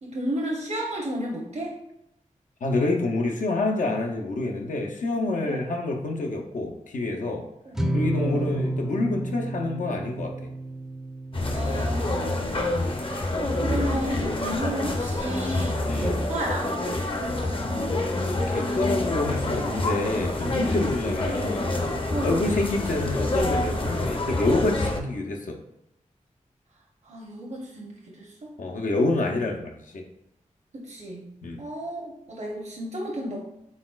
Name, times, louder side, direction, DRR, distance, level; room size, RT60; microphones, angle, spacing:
voice 1, 0.0-1.7 5.5-5.6 7.6-7.8 8.2-8.5 11.5-12.8 13.6-16.7 22.1-22.4 27.0-28.5 30.7-31.3 31.6-33.4, right 1 dB, 60° right, -2 dB, 0.8 m, -32 dB
voice 2, 2.6-7.5 7.9-10.3 15.9-16.2 18.5-21.7 22.2-25.6 28.6-30.0 31.4-31.6, left 2 dB, 85° left, 1 dB, 0.6 m, -27 dB
sound 1, 7.7-14.2, right 1 dB, 5° right, 0.4 m, -32 dB
sound 2, 11.3-25.0, left 2 dB, 40° left, 0.6 m, -27 dB
4.1 x 3.8 x 2.3 m, 0.84 s
wide cardioid pair, 60°, 13 cm